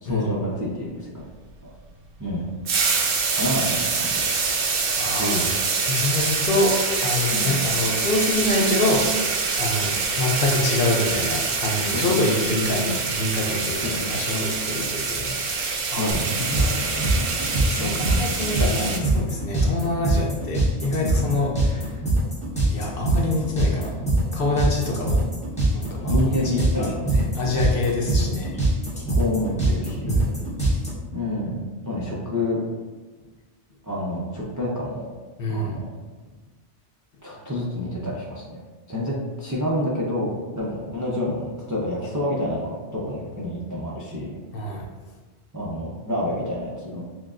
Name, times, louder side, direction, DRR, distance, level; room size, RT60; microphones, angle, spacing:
voice 1, 0.0-1.3 1.6-1.7 2.2-2.5 3.3-4.2 5.2-5.5 7.3-7.6 11.9-12.2 13.8-14.2 16.0-16.3 17.8-18.3 18.8-19.1 21.2-21.4 26.1-27.6 28.3-28.6 29.0-30.1 31.1-32.6 33.8-35.1 35.5-35.9 37.2-38.6 38.9-44.3 45.5-47.0, left 1 dB, 30° right, -5 dB, 0.3 m, -28 dB
sound 1, 2.7-19.0, right 4 dB, 60° right, 0.7 m, -25 dB
voice 2, 5.0-5.4 5.9-16.8 17.3-22.0 22.7-24.0 24.3-25.3 25.7-28.6 30.0-30.5 35.4-35.8 44.5-44.8, left 2 dB, 60° left, -1 dB, 0.7 m, -26 dB
sound 2, 16.1-30.9, right 2 dB, 5° left, 1.0 m, -22 dB
6.1 x 2.3 x 2.4 m, 1.3 s
omnidirectional pair, 1.2 m